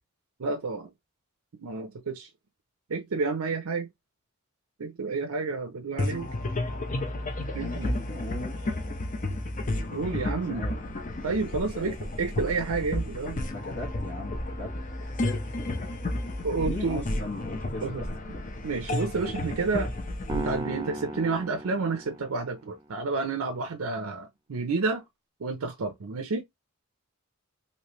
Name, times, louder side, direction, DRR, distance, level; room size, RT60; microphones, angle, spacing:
voice 1, 0.4-0.9 1.6-2.3 2.9-3.9 4.8-6.3 7.5-7.9 9.9-10.6 11.2-13.4 16.4-17.0 17.8-18.0 18.6-19.9 20.3-25.0 25.4-26.4, right 4 dB, 90° right, 0.6 m, -30 dB
sound 1, 6.0-21.6, left 1 dB, 40° left, 0.6 m, -32 dB
voice 2, 7.5-8.9 10.5-10.7 11.7-11.9 13.5-14.7 15.1-15.9 16.6-18.2, left 2 dB, 55° left, 1.1 m, -38 dB
sound 2, 20.3-22.7, right 1 dB, 20° right, 0.4 m, -36 dB
3.2 x 2.8 x 3.0 m
head